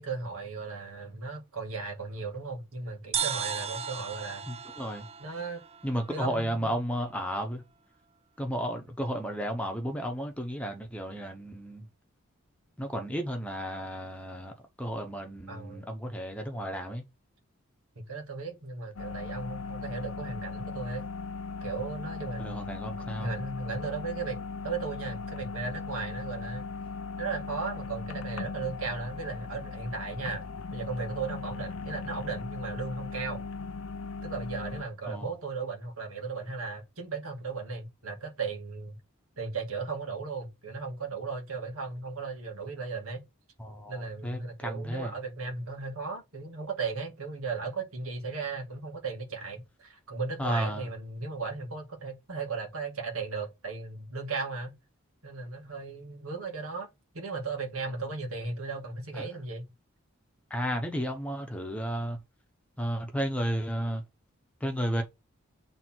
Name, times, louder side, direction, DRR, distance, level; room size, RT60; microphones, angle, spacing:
voice 1, 0.0-4.4 5.2-5.6 6.1-6.7 15.5-15.9 18.0-21.1 21.6-22.5 23.0-26.7 27.2-30.5 30.7-33.4 34.2-39.0 39.4-43.2 43.9-54.7 55.2-56.9 57.1-59.6, right 4 dB, 85° right, 2.1 m, -36 dB
sound 1, 3.1-6.6, right 7 dB, 30° right, 0.4 m, -36 dB
voice 2, 4.5-5.1 5.8-7.6 8.4-11.9 12.8-17.0 22.4-23.3 35.1-35.3 43.6-45.1 50.4-50.9 59.1-59.3 60.5-62.2 62.8-64.0 64.6-65.0, equal, 5° left, 1.0 m, -33 dB
sound 2, 19.0-34.8, left 4 dB, 80° left, 0.6 m, -38 dB
7.9 x 3.5 x 4.5 m
head